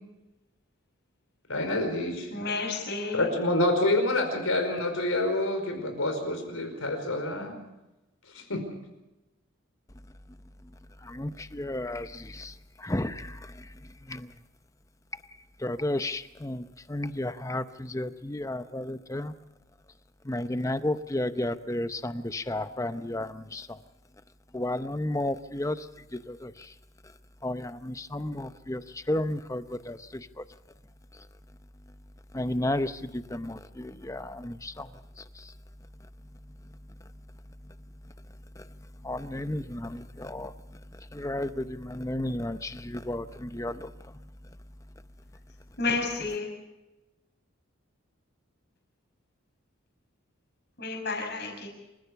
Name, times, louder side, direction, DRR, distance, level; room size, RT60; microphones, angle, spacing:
voice 1, 1.5-2.3 2.6-2.7 3.1-7.6 8.3-8.6, left 1 dB, 90° left, 4.8 m, -27 dB
voice 2, 2.3-3.3 45.8-46.5 50.8-51.7, left 3 dB, 50° left, 5.8 m, -31 dB
voice 3, 11.0-12.5 12.8-13.4 14.1-14.3 15.6-19.3 20.3-23.8 24.5-25.9 26.3-26.5 27.4-30.3 32.3-34.9 39.0-40.5 41.1-43.9, left 1 dB, 15° left, 0.7 m, -32 dB
27.0 x 15.0 x 6.9 m
head